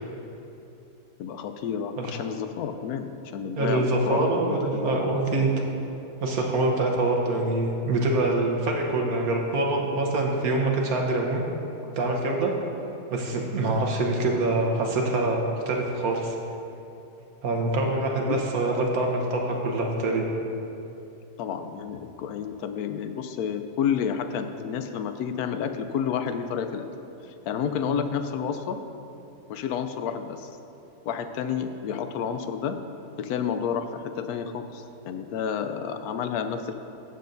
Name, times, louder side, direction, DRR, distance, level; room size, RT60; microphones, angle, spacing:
voice 1, 1.2-5.2 18.2-18.4 21.4-26.9 27.5-28.8 29.5-30.5 31.0-32.8 33.2-36.7, left 7 dB, 80° left, 8 dB, 1.1 m, -30 dB
voice 2, 3.6-5.5 6.2-11.4 11.9-12.5 13.1-16.3 17.4-20.2, right 2 dB, 75° right, 0 dB, 1.5 m, -25 dB
14.0 x 7.7 x 2.6 m, 2.8 s
omnidirectional pair, 1.6 m